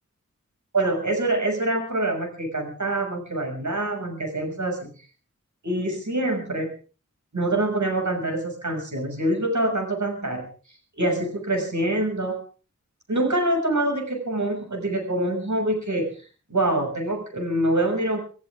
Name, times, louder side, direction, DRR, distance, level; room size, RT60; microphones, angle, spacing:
voice 1, 0.7-4.9 5.6-6.7 7.3-10.4 11.0-12.4 13.1-16.2 16.5-18.2, right 1 dB, 75° right, 3 dB, 6.5 m, -25 dB
26.0 x 14.5 x 3.6 m, 0.39 s
wide cardioid pair, 65°, 30 cm